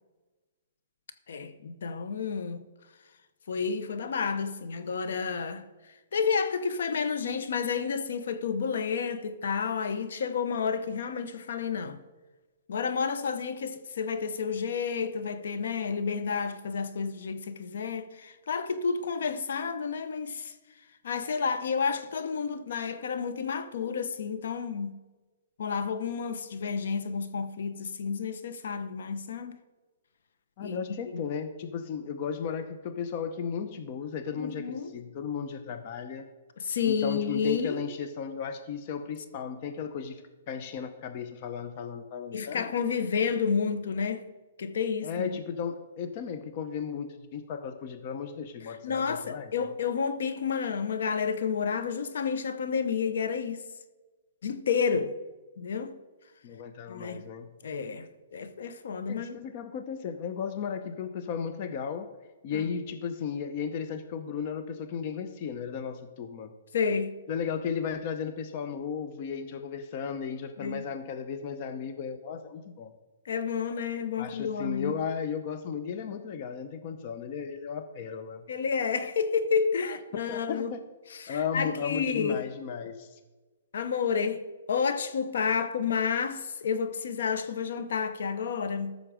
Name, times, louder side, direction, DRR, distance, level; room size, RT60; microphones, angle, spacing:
voice 1, 1.3-2.6 3.5-5.6 6.1-12.0 12.7-20.5 21.0-25.0 25.6-29.6 30.6-30.8 34.4-34.9 36.6-37.9 42.3-44.3 44.6-45.3 48.8-53.6 54.4-55.2 55.6-56.0 56.9-57.2 57.6-59.3 62.5-62.7 66.7-67.2 70.6-70.9 73.3-75.0 78.5-80.8 81.1-82.5 83.7-89.0, left 6 dB, 70° left, 0.9 m, -30 dB
voice 2, 30.6-36.2 36.9-40.2 40.5-42.7 45.0-49.7 56.4-57.5 59.1-62.1 62.4-66.5 67.3-72.9 74.2-78.4 79.9-80.0 80.3-80.8 81.3-83.2, left 7 dB, 35° left, 0.8 m, -35 dB
13.5 x 6.6 x 5.0 m
hypercardioid pair, 160°, 0 cm